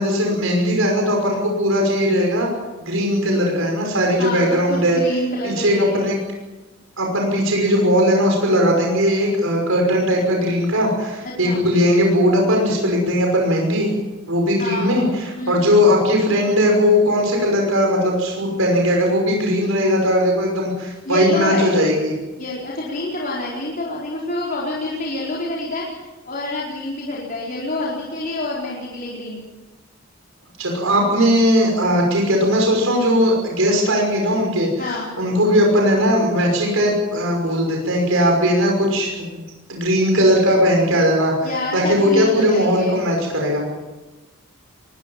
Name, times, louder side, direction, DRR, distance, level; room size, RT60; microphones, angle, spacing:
voice 1, 0.0-2.5 2.8-5.0 5.4-6.2 7.0-13.9 14.3-22.1 30.6-34.7 35.2-39.4 39.7-43.6, equal, 90° right, 1 dB, 5.8 m, -18 dB
voice 2, 4.7-6.0 11.2-11.7 14.6-15.0 15.4-15.6 21.0-21.9 22.4-29.4 34.8-35.1 41.4-43.1, left 2 dB, 45° left, -5 dB, 4.5 m, -27 dB
23.0 x 20.0 x 7.4 m, 1.1 s
head